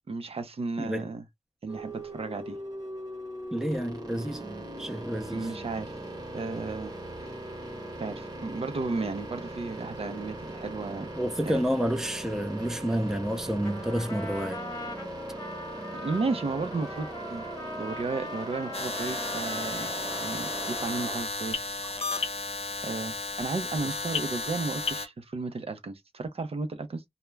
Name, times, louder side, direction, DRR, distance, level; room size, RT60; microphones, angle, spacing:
voice 1, 0.1-1.2 1.6-2.6 5.3-5.9 6.3-6.9 7.2-7.4 8.0-11.1 11.5-11.6 16.0-17.5 17.8-19.9 20.2-21.6 22.8-27.0, right 3 dB, 60° right, 0.5 m, -33 dB
voice 2, 0.8-1.1 3.5-5.5 11.1-14.6 21.8-21.9 23.8-24.0, equal, 5° right, 0.5 m, -30 dB
sound 1, 1.7-21.2, right 1 dB, 35° right, 1.0 m, -40 dB
Trumpet, 13.6-21.5, left 2 dB, 30° left, 0.9 m, -42 dB
sound 2, 18.7-25.1, left 4 dB, 65° left, 0.6 m, -33 dB
2.3 x 2.1 x 3.1 m
wide cardioid pair, 90°, 11 cm